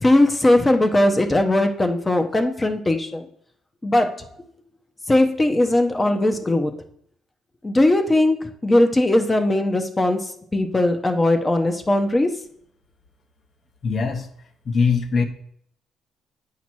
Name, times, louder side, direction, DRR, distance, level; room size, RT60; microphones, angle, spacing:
voice 1, 0.0-3.3 3.8-4.2 5.1-6.7 7.6-12.3, left 1 dB, 20° left, 6 dB, 0.7 m, -19 dB
voice 2, 13.8-14.3 14.6-15.2, left 5 dB, 45° left, 6 dB, 0.9 m, -21 dB
8.4 x 2.9 x 6.1 m, 0.66 s
cardioid pair, 100°, 0 cm